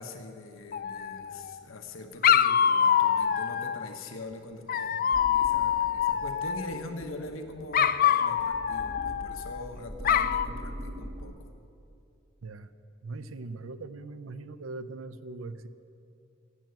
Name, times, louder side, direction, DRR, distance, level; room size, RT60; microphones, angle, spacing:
voice 1, 0.0-11.3, left 2 dB, 85° left, 5 dB, 1.1 m, -43 dB
Dog, 0.7-1.5 2.2-3.9 4.7-6.8 7.7-9.6 10.0-10.5, left 8 dB, 45° left, 0.4 m, -25 dB
sound 1, 5.1-11.3, equal, 30° right, 1.4 m, -43 dB
voice 2, 13.0-15.7, right 3 dB, 80° right, 13 dB, 0.7 m, -40 dB
16.5 x 7.7 x 9.3 m, 2.7 s
head